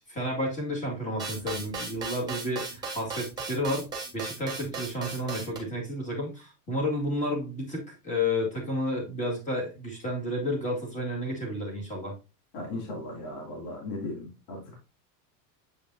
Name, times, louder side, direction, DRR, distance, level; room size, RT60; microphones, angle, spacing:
voice 1, 0.1-3.9 4.1-12.1, left 1 dB, 15° left, -1 dB, 2.1 m, -31 dB
sound 1, 1.2-5.6, right 4 dB, 10° right, 1.7 m, -36 dB
voice 2, 12.5-14.8, left 2 dB, 55° left, 0 dB, 2.7 m, -37 dB
7.7 x 5.1 x 2.7 m, 0.29 s
supercardioid pair, 165°, 49 cm